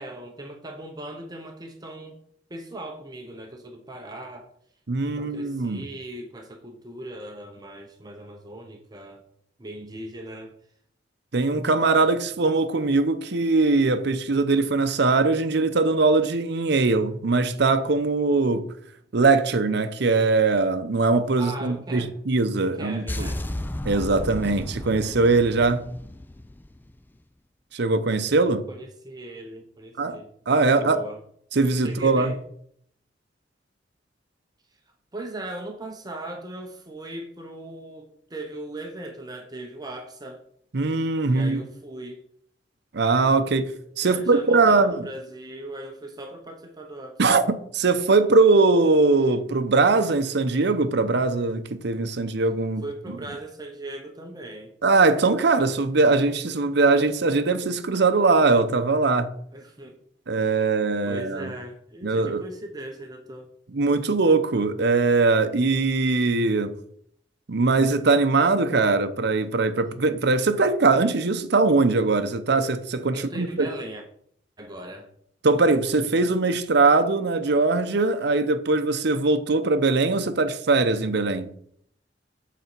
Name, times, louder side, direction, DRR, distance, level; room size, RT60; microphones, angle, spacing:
voice 1, 0.0-2.2 2.5-4.5 5.0-9.2 9.6-10.5 21.4-22.1 22.6-23.5 28.7-31.2 31.8-32.4 35.1-40.4 41.3-42.2 44.0-47.4 52.8-54.7 59.5-60.0 60.4-60.7 61.0-63.5 73.1-74.0 74.6-75.1, right 1 dB, 20° right, 0.8 m, -39 dB
voice 2, 4.9-5.9 11.3-18.7 19.1-23.3 23.8-25.9 27.7-28.7 30.0-30.2 30.5-31.0 31.5-32.3 40.7-41.6 42.9-45.1 47.2-52.8 54.8-59.3 60.3-61.5 62.0-62.4 63.7-66.7 67.5-73.7 75.4-81.6, right 3 dB, 65° right, 0.7 m, -21 dB
sound 1, 23.1-27.2, left 1 dB, 10° left, 0.3 m, -33 dB
8.1 x 4.1 x 6.0 m
head